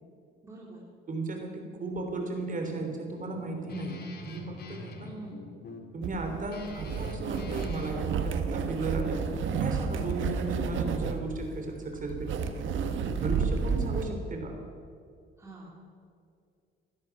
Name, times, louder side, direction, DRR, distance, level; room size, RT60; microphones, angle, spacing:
voice 1, 0.4-0.8 5.0-5.5 13.2-13.5 15.4-15.7, right 2 dB, 15° right, -4 dB, 3.4 m, -45 dB
voice 2, 1.1-5.1 5.9-9.2 9.5-12.4 13.2-14.6, right 2 dB, 40° right, 3 dB, 3.4 m, -35 dB
Guitar, 2.3-8.0, left 3 dB, 50° left, 2.3 m, -46 dB
sound 1, 6.0-14.1, right 6 dB, 75° right, 1.3 m, -31 dB
16.5 x 13.0 x 6.0 m, 2.3 s
cardioid pair, 90°, 20 cm